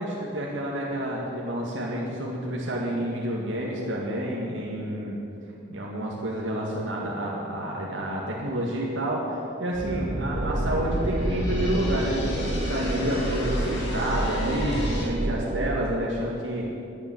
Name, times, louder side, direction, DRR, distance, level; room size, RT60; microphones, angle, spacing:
voice 1, 0.0-5.2 5.7-16.7, right 1 dB, 85° right, -3 dB, 2.1 m, -29 dB
sound 1, 9.7-15.0, equal, 65° left, 4.5 m, -32 dB
sound 2, 10.3-15.8, right 1 dB, 45° right, 0.8 m, -29 dB
11.0 x 10.5 x 9.4 m, 2.8 s
head